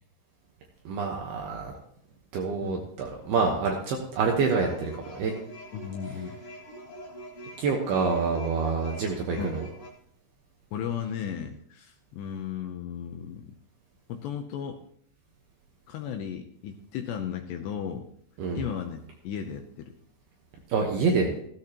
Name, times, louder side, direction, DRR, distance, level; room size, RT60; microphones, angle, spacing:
voice 1, 0.9-1.8 2.3-5.3 7.6-9.7 18.4-18.6 20.7-21.3, right 4 dB, 70° right, 1 dB, 2.7 m, -27 dB
sound 1, 4.6-9.9, right 1 dB, 50° left, 1.6 m, -44 dB
voice 2, 5.7-6.4 9.4-9.6 10.7-13.5 14.1-14.8 15.9-18.1 18.5-19.9, left 8 dB, 80° left, 5 dB, 2.6 m, -35 dB
16.0 x 13.0 x 3.0 m, 0.69 s
omnidirectional pair, 5.7 m